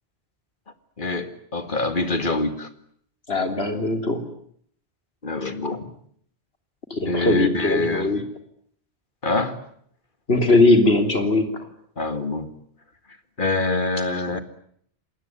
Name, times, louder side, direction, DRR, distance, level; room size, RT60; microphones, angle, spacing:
voice 1, 1.0-2.7 5.2-5.9 7.1-8.1 9.2-9.6 12.0-12.5 13.4-14.4, left 2 dB, 50° left, 2.3 m, -25 dB
voice 2, 3.3-4.2 6.9-8.2 10.3-11.7, left 2 dB, 70° left, 3.8 m, -20 dB
27.5 x 20.5 x 9.5 m
omnidirectional pair, 1.1 m